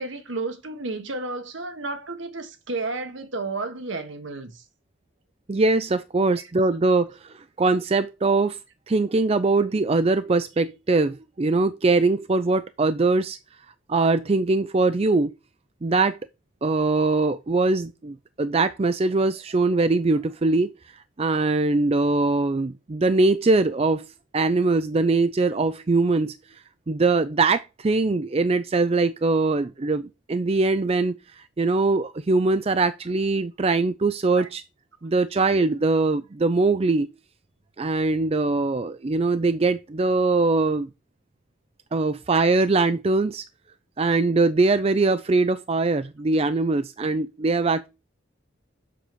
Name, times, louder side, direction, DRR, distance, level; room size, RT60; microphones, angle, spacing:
voice 1, 0.0-4.6 34.4-34.5, right 3 dB, 70° right, 1.5 m, -32 dB
voice 2, 5.5-8.6 8.9-13.4 13.9-15.3 15.8-16.2 16.6-20.7 21.2-24.0 24.3-26.4 26.9-34.6 35.0-37.1 37.8-40.9 41.9-43.4 44.0-47.9, right 3 dB, 30° right, 0.4 m, -22 dB
7.5 x 6.5 x 5.2 m
head